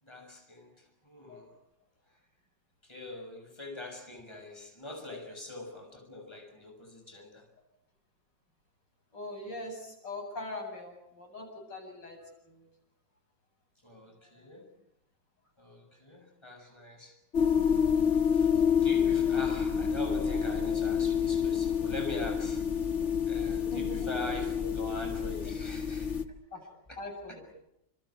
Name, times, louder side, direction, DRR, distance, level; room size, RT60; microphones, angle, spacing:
voice 1, 0.0-1.6 2.8-7.5 13.8-14.7 15.6-17.2 18.1-22.7 23.3-26.2 26.9-27.0 27.3-27.4, left 2 dB, 15° left, 3 dB, 7.1 m, -43 dB
voice 2, 9.1-12.2 12.4-12.7 14.3-14.5 23.7-24.1 26.5-26.6 27.0-27.6, left 2 dB, 85° left, 2 dB, 8.9 m, -42 dB
sound 1, 17.3-26.2, left 7 dB, 40° left, 1.9 m, -28 dB
29.5 x 29.0 x 4.9 m, 0.82 s
omnidirectional pair, 1.9 m